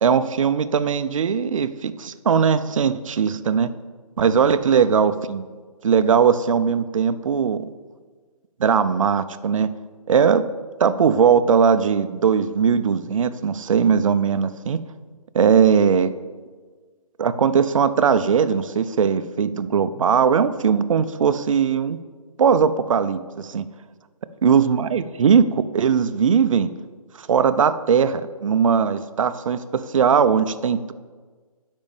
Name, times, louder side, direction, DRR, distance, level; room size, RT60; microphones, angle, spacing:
voice 1, 0.0-3.7 4.2-5.5 5.8-7.6 8.6-9.7 10.1-10.4 10.8-14.8 15.3-16.1 17.2-22.0 22.4-23.6 24.4-26.7 27.2-30.9, right 6 dB, 55° right, 13 dB, 0.6 m, -19 dB
10.5 x 5.4 x 7.1 m, 1.5 s
figure-of-eight pair, 145°, 19 cm